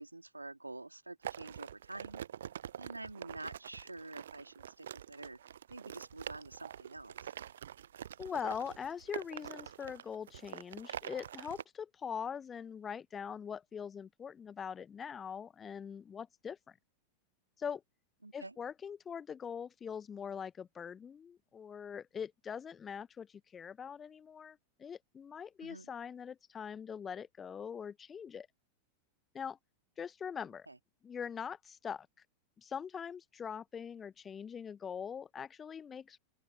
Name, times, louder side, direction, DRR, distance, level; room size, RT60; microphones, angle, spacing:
voice 1, 0.0-2.2 2.8-5.4 5.7-7.3 18.2-18.5 25.6-25.9 30.7-30.8, right 2 dB, 85° right, 2.2 m, -48 dB
sound 1, 1.2-11.6, right 10 dB, 65° right, 0.4 m, -46 dB
voice 2, 8.2-16.8 17.6-17.8 18.3-28.5 29.3-29.6 30.0-30.7 31.0-32.1 32.6-36.2, left 7 dB, 20° left, 1.0 m, -42 dB
open air
figure-of-eight pair, 90°, 0 cm